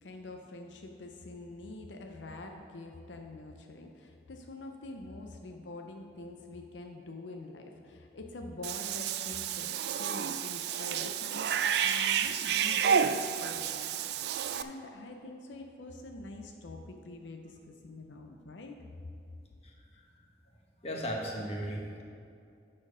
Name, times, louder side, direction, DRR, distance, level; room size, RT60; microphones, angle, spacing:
voice 1, 0.0-11.5 11.8-14.1 14.5-18.8, left 2 dB, 85° left, 3 dB, 0.6 m, -45 dB
Cat / Bathtub (filling or washing), 8.6-14.6, right 7 dB, 65° right, 0.3 m, -30 dB
voice 2, 20.8-22.0, equal, 35° left, -1 dB, 1.1 m, -35 dB
11.5 x 4.4 x 5.0 m, 2.5 s
head